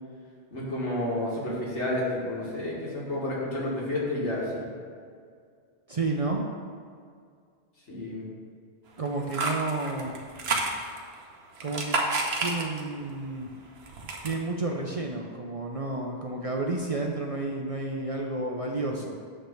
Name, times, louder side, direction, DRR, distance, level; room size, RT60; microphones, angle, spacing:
voice 1, 0.5-4.7 7.9-8.3, left 1 dB, 90° left, -5 dB, 2.2 m, -30 dB
voice 2, 5.9-6.5 9.0-10.1 11.6-12.0 12.4-13.5 14.2-19.2, right 3 dB, 40° right, 0 dB, 0.5 m, -31 dB
sound 1, 9.0-11.1 11.5-13.0 13.4-14.4, right 3 dB, 65° right, 1.1 m, -30 dB
8.9 x 3.4 x 6.3 m, 2.1 s
omnidirectional pair, 1.2 m